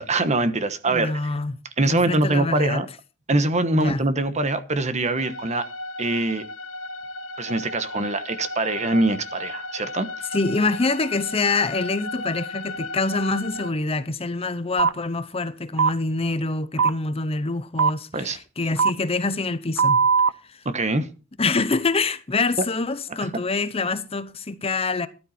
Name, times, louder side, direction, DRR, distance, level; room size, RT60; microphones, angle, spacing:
voice 1, 0.0-1.3 1.8-2.9 3.3-5.7 6.0-6.5 7.4-10.1 18.1-18.4 20.6-21.1, right 2 dB, 35° right, 1.2 m, -23 dB
voice 2, 0.9-1.6 1.9-2.8 3.7-4.0 10.3-20.0 20.5-20.6 21.4-25.1, left 3 dB, 30° left, 0.7 m, -25 dB
sound 1, 5.2-13.7, left 2 dB, 90° left, 1.9 m, -35 dB
sound 2, 14.8-14.9 15.8-15.9 16.8-16.9 17.8-17.9 18.8-18.9 19.8-20.3, right 5 dB, 70° right, 0.7 m, -18 dB
13.0 x 12.0 x 4.3 m
head